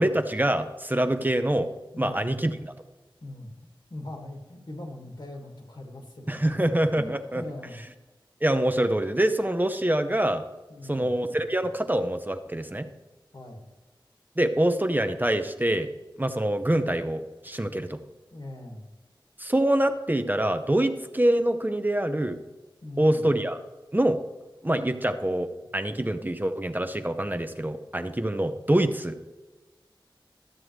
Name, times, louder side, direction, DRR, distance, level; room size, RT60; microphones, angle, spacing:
voice 1, 0.0-1.7 2.0-2.7 6.3-7.4 8.4-10.4 10.9-12.9 14.4-15.9 16.2-18.0 19.4-22.4 23.0-23.6 23.9-24.2 24.6-29.2, right 1 dB, 20° right, 8 dB, 0.7 m, -25 dB
voice 2, 1.9-2.3 3.2-3.5 3.9-6.7 6.9-7.8 10.7-11.1 13.3-13.7 18.3-18.9 22.8-23.3, left 1 dB, 60° left, 1 dB, 1.9 m, -41 dB
12.5 x 7.6 x 3.2 m, 1.2 s
wide cardioid pair, 50°, 9 cm